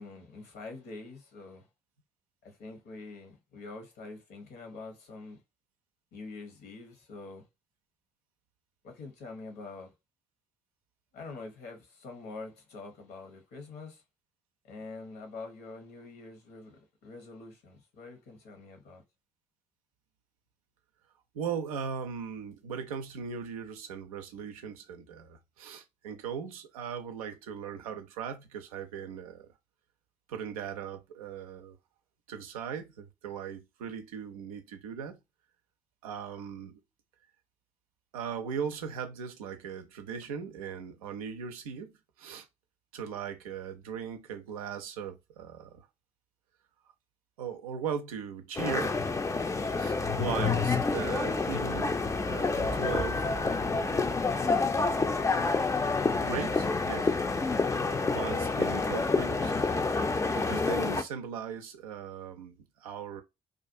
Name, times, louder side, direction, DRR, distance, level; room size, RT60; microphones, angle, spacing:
voice 1, 0.0-1.7 2.4-5.4 6.1-7.5 8.8-9.9 11.1-14.0 14.6-19.0, left 3 dB, 65° left, 1.0 m, -45 dB
voice 2, 21.3-29.5 30.3-31.8 32.3-35.2 36.0-36.8 38.1-42.5 42.9-45.9 47.4-49.0 49.8-52.0 52.3-53.9 54.5-54.7 56.2-57.2 58.1-59.6 60.3-63.2, right 7 dB, 85° right, 0.4 m, -38 dB
sound 1, 48.6-61.0, left 4 dB, 15° left, 0.4 m, -28 dB
2.4 x 2.4 x 2.5 m
hypercardioid pair, 40°, 18 cm